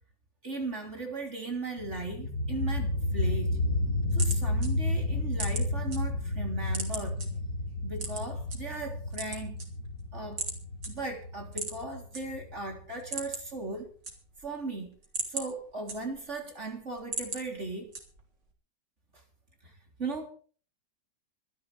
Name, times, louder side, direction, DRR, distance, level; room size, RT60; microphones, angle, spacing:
voice 1, 0.4-3.6 4.1-7.2 7.8-9.6 10.1-10.4 10.9-13.9 14.4-14.9 15.3-17.9 19.6-19.7 20.0-20.3, right 3 dB, 40° right, 3.8 m, -37 dB
sound 1, 1.8-13.4, left 2 dB, 75° left, 6.4 m, -31 dB
sound 2, 3.7-6.0 6.3-7.3 8.0-8.6 9.0-10.0 10.4-10.6 10.8-10.9 11.5-12.2 12.6-12.7 12.9-13.6 13.9-14.5 14.9-16.4 16.8-17.4 17.9-18.4, right 3 dB, 80° right, 4.1 m, -37 dB
25.5 x 10.5 x 3.4 m
omnidirectional pair, 1.9 m